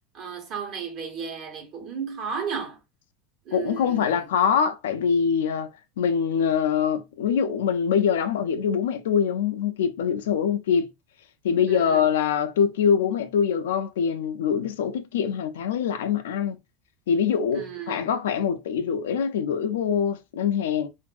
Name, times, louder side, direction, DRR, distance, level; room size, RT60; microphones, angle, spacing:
voice 1, 0.1-2.8 3.5-4.3 11.7-12.1 17.5-18.1, right 6 dB, 50° right, 1.1 m, -34 dB
voice 2, 3.5-10.9 11.4-16.6 17.1-20.9, left 7 dB, 90° left, 0.4 m, -24 dB
2.6 x 2.5 x 2.3 m
supercardioid pair, 110°, 0 cm